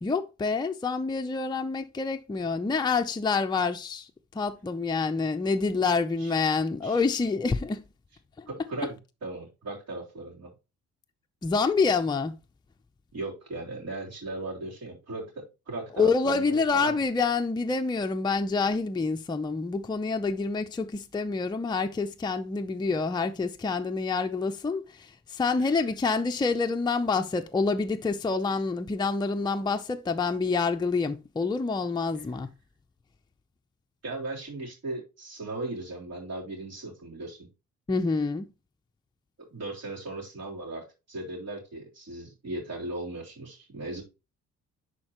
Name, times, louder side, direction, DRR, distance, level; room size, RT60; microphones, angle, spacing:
voice 1, 0.0-7.9 8.4-8.5 11.4-12.4 16.0-32.5 37.9-38.5, left 4 dB, 15° left, 0.5 m, -27 dB
voice 2, 8.5-9.0 9.2-10.5 13.1-17.0 25.6-25.8 34.0-37.5 39.4-44.0, right 2 dB, 55° right, 3.6 m, -37 dB
10.5 x 4.4 x 3.0 m
cardioid pair, 90°, 30 cm